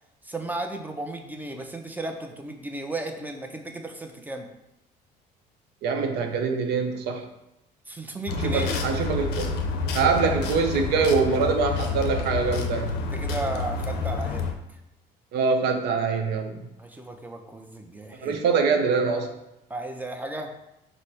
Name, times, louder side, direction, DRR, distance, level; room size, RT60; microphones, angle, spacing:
voice 1, 0.2-4.5 7.9-8.8 10.2-10.3 13.1-14.5 16.8-18.4 19.7-20.5, right 2 dB, 10° right, 4 dB, 0.5 m, -34 dB
voice 2, 5.8-7.3 8.4-9.6 9.9-12.9 15.3-16.6 18.2-19.3, right 5 dB, 80° right, 5 dB, 0.6 m, -24 dB
Transformacion-Excitado, 8.3-14.5, left 4 dB, 85° left, 0.5 m, -29 dB
5.0 x 2.1 x 4.3 m, 0.89 s
cardioid pair, 110°, 17 cm